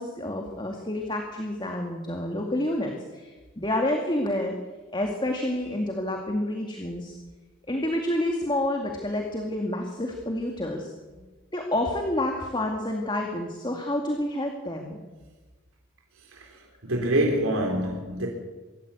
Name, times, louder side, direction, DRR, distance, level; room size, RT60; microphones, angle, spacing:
voice 1, 0.0-4.5 4.9-7.2 7.7-10.9 11.5-15.0, left 1 dB, 20° left, 2.2 m, -29 dB
voice 2, 16.3-18.3, right 1 dB, 85° right, 3.6 m, -26 dB
24.0 x 14.5 x 8.4 m
head